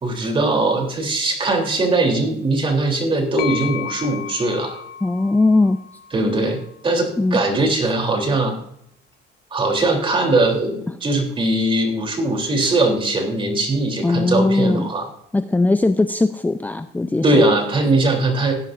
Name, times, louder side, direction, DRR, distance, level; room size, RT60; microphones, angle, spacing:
voice 1, 0.0-4.8 6.1-6.6 6.8-8.6 9.5-15.1 17.2-18.5, right 2 dB, 30° right, 2 dB, 3.4 m, -20 dB
sound 1, 3.4-7.1, left 9 dB, 70° left, 1.4 m, -34 dB
voice 2, 5.0-5.8 7.2-7.4 10.9-11.0 14.0-14.9 15.3-17.4, left 2 dB, 10° left, 9 dB, 0.5 m, -19 dB
16.5 x 10.5 x 2.6 m, 0.71 s
cardioid pair, 110°, 17 cm